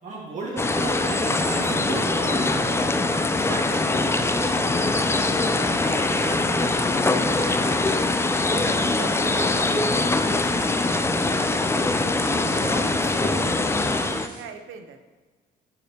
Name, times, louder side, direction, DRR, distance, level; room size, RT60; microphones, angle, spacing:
voice 1, 0.0-2.9 12.1-13.6, right 2 dB, 40° right, -6 dB, 1.9 m, -34 dB
voice 2, 0.5-0.9 3.0-5.2 5.6-8.0 8.4-12.0 12.5-13.6 13.8-15.0, right 7 dB, 85° right, 7 dB, 0.6 m, -41 dB
sound 1, 0.6-14.3, left 2 dB, 15° left, 0.3 m, -23 dB
sound 2, 2.1-14.4, right 1 dB, 20° right, 1.7 m, -47 dB
6.1 x 5.9 x 2.9 m, 1.3 s
cardioid pair, 90°, 20 cm